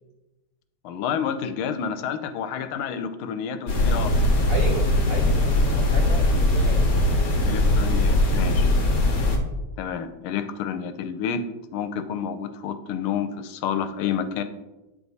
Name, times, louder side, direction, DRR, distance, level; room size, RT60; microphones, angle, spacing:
voice 1, 0.8-4.1 7.4-8.7 9.8-11.4 11.7-14.4, left 7 dB, 85° left, 10 dB, 1.4 m, -29 dB
sound 1, 3.7-9.4, left 1 dB, 50° left, 1.4 m, -20 dB
voice 2, 4.5-6.8, right 3 dB, 70° right, 1 dB, 0.8 m, -33 dB
9.1 x 3.6 x 4.0 m, 1.0 s
omnidirectional pair, 2.3 m